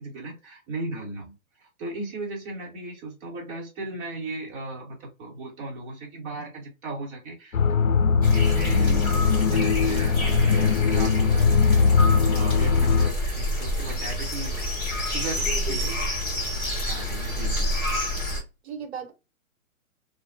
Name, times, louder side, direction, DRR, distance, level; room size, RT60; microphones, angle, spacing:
voice 1, 0.0-1.3 1.6-7.6 8.3-9.0 9.5-14.7 15.0-15.9 16.8-17.8, right 2 dB, 20° right, 1.1 m, -36 dB
sound 1, 7.5-13.1, left 5 dB, 75° left, 0.6 m, -20 dB
sound 2, 8.2-18.4, left 1 dB, 15° left, 1.6 m, -28 dB
voice 2, 15.3-16.0 18.6-19.1, right 6 dB, 50° right, 1.0 m, -36 dB
2.9 x 2.2 x 2.6 m
hypercardioid pair, 145°, 42 cm